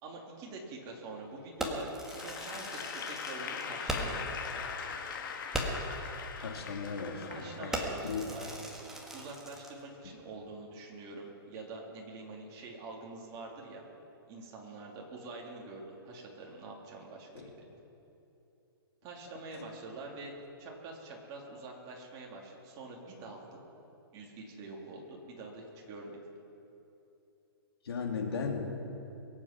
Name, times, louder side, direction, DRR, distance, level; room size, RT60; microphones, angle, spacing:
voice 1, 0.0-4.6 7.3-8.6 9.1-13.8 14.3-17.5 19.0-20.3 20.6-23.6 24.1-26.2, right 3 dB, 30° right, -1 dB, 2.8 m, -45 dB
Fireworks, 1.6-4.3 4.7-4.8 5.1-5.2 5.5-6.0 6.6-6.8 7.1-7.4 7.7-9.8, right 1 dB, 5° right, 1.5 m, -38 dB
Applause / Crowd, 2.0-8.3, left 6 dB, 55° left, 1.7 m, -41 dB
voice 2, 6.3-8.3 17.3-17.5 19.6-19.7 27.8-28.6, left 5 dB, 80° left, 1 dB, 2.8 m, -37 dB
22.5 x 8.5 x 5.9 m, 2.9 s
hypercardioid pair, 150°, 13 cm